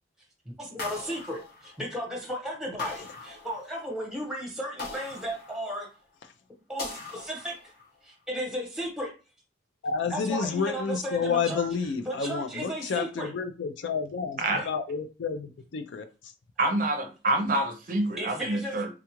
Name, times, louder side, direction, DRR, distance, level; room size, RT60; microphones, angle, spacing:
voice 1, 0.6-5.9 6.7-7.5 8.0-9.1 10.1-13.3 14.5-14.7 18.2-18.8, equal, 5° right, 0.9 m, -35 dB
sound 1, 0.8-2.1 2.8-4.0 4.8-6.0 6.8-8.0, left 4 dB, 50° left, 0.8 m, -40 dB
voice 2, 9.8-14.4 14.7-16.1, left 5 dB, 65° left, 0.4 m, -30 dB
voice 3, 14.4-14.7 16.6-18.9, right 2 dB, 45° right, 0.5 m, -27 dB
3.5 x 2.3 x 2.9 m
head